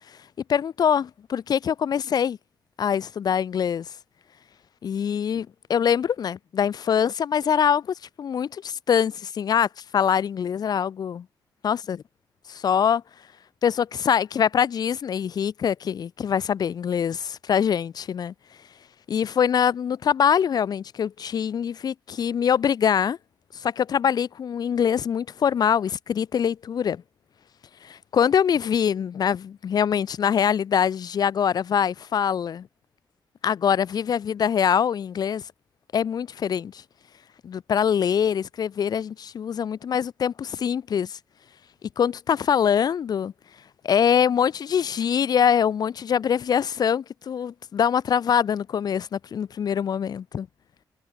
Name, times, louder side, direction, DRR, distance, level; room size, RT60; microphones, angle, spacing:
voice 1, 0.5-2.4 2.8-3.9 4.8-11.2 11.6-12.0 12.5-13.0 13.6-17.2 17.5-18.3 19.1-23.2 23.6-27.0 27.8-32.7 33.4-35.4 35.9-36.8 37.4-41.2 41.8-43.3 43.8-50.5, left 8 dB, 60° left, 0.5 m, -24 dB
cardioid pair, 70°, 8 cm